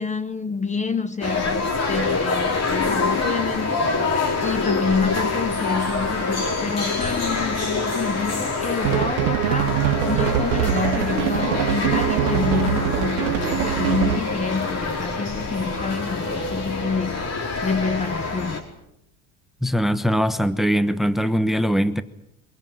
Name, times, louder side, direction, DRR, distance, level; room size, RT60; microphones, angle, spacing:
voice 1, 0.0-4.1 4.4-9.8 10.1-17.3 17.6-18.7, left 4 dB, 15° left, 1.0 m, -27 dB
sound 1, 1.2-18.6, left 3 dB, 35° left, 4.9 m, -26 dB
sound 2, 8.8-14.4, right 13 dB, 85° right, 1.0 m, -23 dB
voice 2, 19.6-22.0, equal, ahead, 1.1 m, -21 dB
24.0 x 17.5 x 9.4 m
supercardioid pair, 110°, 42 cm